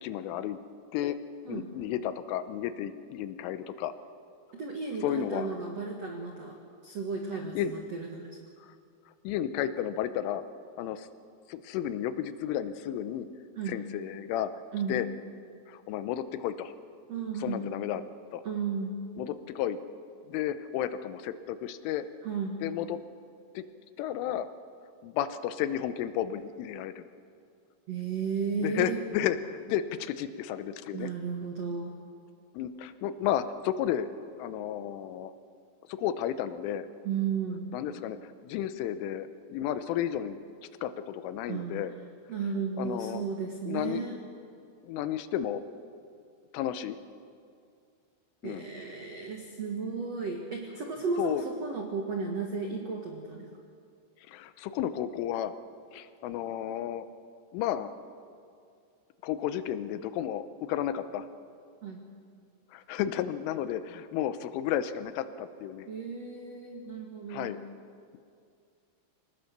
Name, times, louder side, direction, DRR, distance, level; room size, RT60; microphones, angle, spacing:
voice 1, 0.0-0.6 0.9-1.2 1.5-3.9 5.0-5.5 7.6-7.7 8.6-8.8 9.3-10.4 10.8-11.1 11.5-13.3 13.7-14.5 14.9-15.1 15.7-16.7 17.4-18.0 18.3-18.4 19.2-19.8 20.3-22.1 22.6-23.0 23.6-23.7 24.0-24.5 25.0-27.1 28.6-31.1 32.6-34.1 34.4-35.4 35.9-36.9 37.7-40.4 40.8-41.9 42.8-43.2 43.7-44.0 44.8-45.6 46.5-47.0 48.4-48.7 51.2-51.4 54.3-55.6 55.9-57.1 57.5-57.9 59.2-61.3 62.7-65.9 67.3-67.6, left 10 dB, 85° left, 12 dB, 3.4 m, -32 dB
voice 2, 4.5-6.6 6.8-8.4 13.6-13.8 14.7-15.0 17.1-17.7 18.4-19.0 22.2-22.6 27.9-29.0 30.9-31.9 37.0-37.6 41.5-41.7 42.3-44.2 48.4-53.5 61.8-62.1 65.9-67.6, right 5 dB, 85° right, 2 dB, 1.4 m, -34 dB
25.5 x 19.0 x 6.7 m, 2.3 s
omnidirectional pair, 5.6 m